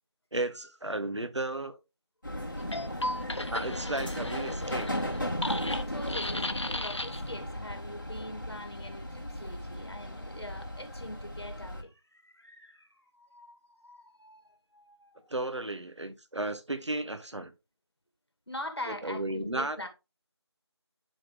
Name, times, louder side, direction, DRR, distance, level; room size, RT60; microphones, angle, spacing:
voice 1, 0.3-1.8 3.5-4.9 15.3-17.5 18.9-19.9, right 2 dB, 85° right, 1.3 m, -34 dB
sound 1, 2.2-11.8, equal, 45° left, 2.4 m, -36 dB
sound 2, 2.6-7.4, left 1 dB, 80° left, 1.0 m, -36 dB
voice 2, 3.1-3.9 5.6-15.3 18.5-19.9, left 1 dB, 60° left, 2.5 m, -44 dB
10.5 x 4.4 x 3.5 m
figure-of-eight pair, 180°, 15 cm